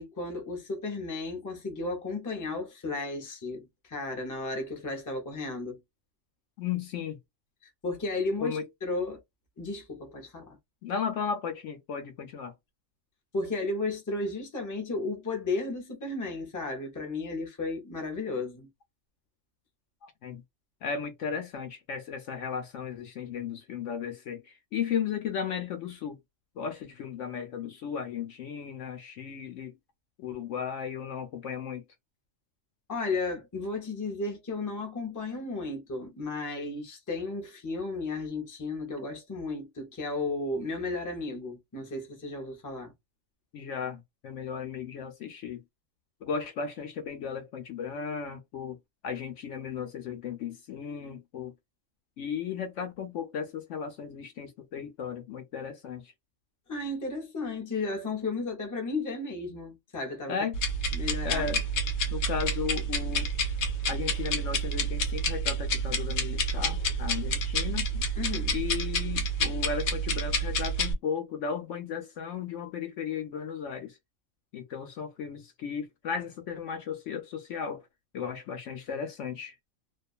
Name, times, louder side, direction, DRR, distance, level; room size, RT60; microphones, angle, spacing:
voice 1, 0.0-5.8 7.6-9.2 9.6-10.6 13.3-18.7 32.9-42.9 56.7-60.4 60.9-61.5 68.2-68.6, left 3 dB, 20° left, 0.6 m, -34 dB
voice 2, 6.6-7.2 8.4-8.7 10.8-12.5 20.0-20.4 20.8-24.4 24.7-26.2 26.6-29.7 30.2-31.8 43.5-45.6 46.2-48.8 49.0-51.5 52.2-56.1 60.3-60.6 61.2-61.6 62.1-63.3 63.9-68.0 68.5-73.9 74.5-77.8 78.1-79.5, left 7 dB, 65° left, 0.9 m, -35 dB
sound 1, 60.5-70.9, right 1 dB, 90° left, 1.2 m, -29 dB
2.5 x 2.3 x 2.3 m
omnidirectional pair, 1.4 m